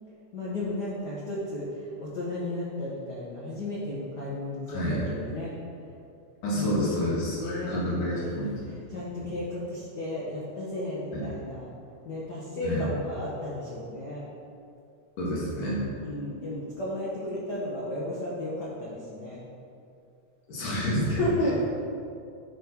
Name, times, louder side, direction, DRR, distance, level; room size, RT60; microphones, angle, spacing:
voice 1, 0.3-5.5 6.5-11.7 12.0-14.2 16.0-19.4 21.1-21.5, left 1 dB, 70° left, -6 dB, 0.9 m, -34 dB
voice 2, 4.7-5.0 6.4-8.8 11.1-11.2 12.6-12.8 15.2-15.8 20.5-21.2, equal, 85° left, -7 dB, 3.2 m, -29 dB
11.0 x 3.8 x 4.5 m, 2.5 s
omnidirectional pair, 3.5 m